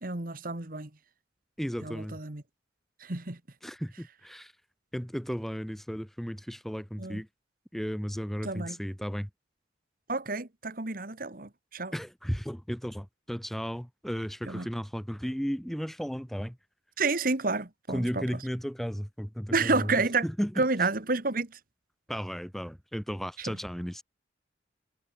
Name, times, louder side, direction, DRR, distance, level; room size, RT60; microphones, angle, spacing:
voice 1, 0.0-0.9 1.8-2.4 3.0-3.4 7.0-7.2 8.4-8.8 10.1-11.9 14.5-14.7 17.0-18.3 19.5-20.2 20.6-21.5, right 3 dB, 50° right, 1.8 m, -30 dB
voice 2, 1.6-2.2 3.6-4.5 4.9-7.3 7.7-9.3 11.9-16.6 17.9-20.6 22.1-24.0, equal, ahead, 1.4 m, -34 dB
head